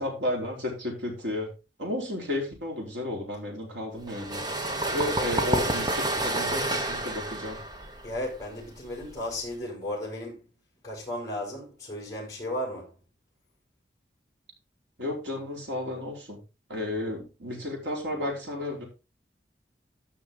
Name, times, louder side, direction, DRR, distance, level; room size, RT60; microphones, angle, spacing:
voice 1, 0.0-1.5 1.8-4.5 4.9-7.6 15.0-16.4 16.7-18.8, left 1 dB, 90° right, 4.9 m, -32 dB
sound 1, 4.1-9.5, right 2 dB, 20° right, 1.2 m, -29 dB
voice 2, 8.0-10.5 10.8-13.0, left 1 dB, 20° left, 5.9 m, -35 dB
13.0 x 6.2 x 3.9 m
head